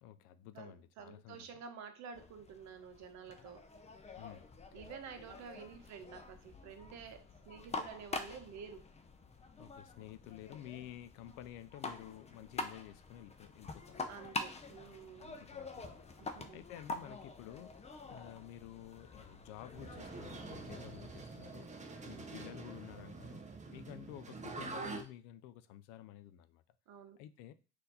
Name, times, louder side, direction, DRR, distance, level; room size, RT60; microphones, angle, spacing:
voice 1, 0.0-1.5 4.2-4.5 9.6-14.2 15.2-17.8 18.1-21.7 22.1-23.4 23.7-26.6 27.2-27.5, left 12 dB, 75° left, 0.5 m, -52 dB
voice 2, 0.5-3.6 4.7-8.9 14.1-15.4 16.2-16.6 22.0-22.5 26.9-27.2, right 6 dB, 60° right, 0.9 m, -50 dB
sound 1, 2.1-21.4, left 3 dB, 20° left, 0.6 m, -47 dB
sound 2, 19.7-25.0, right 3 dB, 20° right, 0.8 m, -46 dB
4.2 x 2.7 x 4.0 m
supercardioid pair, 85°, 32 cm